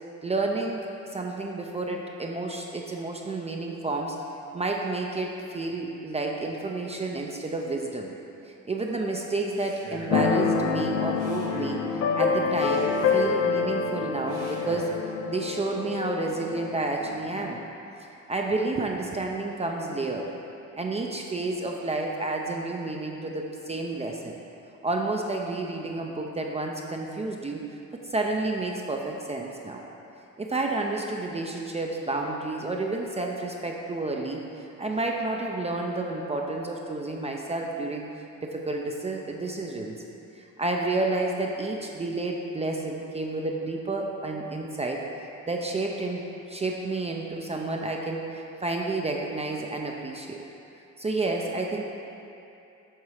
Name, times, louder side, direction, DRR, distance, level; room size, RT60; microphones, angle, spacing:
voice 1, 0.2-4.2 4.5-8.1 8.5-14.9 15.3-17.6 18.3-20.3 20.7-24.4 24.8-27.6 27.9-29.8 30.4-38.1 38.4-39.9 40.3-45.0 45.5-50.4 51.0-51.8, right 2 dB, 20° right, 0 dB, 0.5 m, -30 dB
Male speech man speaking, 9.5-10.3 11.1-11.8 12.4-13.4 14.2-14.9, right 1 dB, 85° right, 1.4 m, -43 dB
Keyboard (musical), 10.1-17.6, left 5 dB, 55° left, 0.5 m, -27 dB
7.3 x 3.7 x 4.8 m, 2.8 s
cardioid pair, 90°, 30 cm